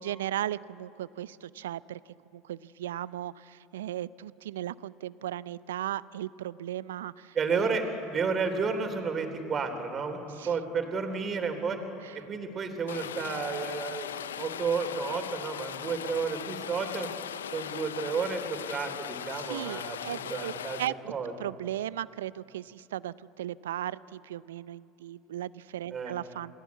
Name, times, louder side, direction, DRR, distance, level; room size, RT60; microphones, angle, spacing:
voice 1, 0.0-2.0 2.3-7.9 10.4-10.6 12.0-12.2 19.4-20.5 20.8-21.1 21.4-26.5, right 12 dB, 80° right, 19 dB, 0.5 m, -36 dB
voice 2, 7.4-7.8 8.1-11.8 12.1-17.1 17.5-20.8 21.1-21.3 25.9-26.1, right 5 dB, 35° right, 6 dB, 3.5 m, -32 dB
Rain, 12.9-20.9, left 9 dB, 80° left, 0.5 m, -39 dB
27.0 x 17.5 x 8.4 m, 2.9 s
hypercardioid pair, 75°, 0 cm